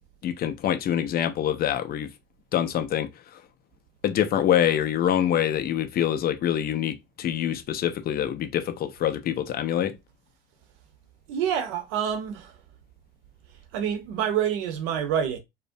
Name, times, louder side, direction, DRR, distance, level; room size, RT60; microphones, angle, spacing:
voice 1, 0.2-2.1 2.5-3.1 4.0-10.0, left 10 dB, 30° left, 0.4 m, -25 dB
voice 2, 11.3-12.5 13.7-15.4, right 9 dB, 60° right, 0.7 m, -27 dB
2.5 x 2.0 x 2.5 m
figure-of-eight pair, 70°, 31 cm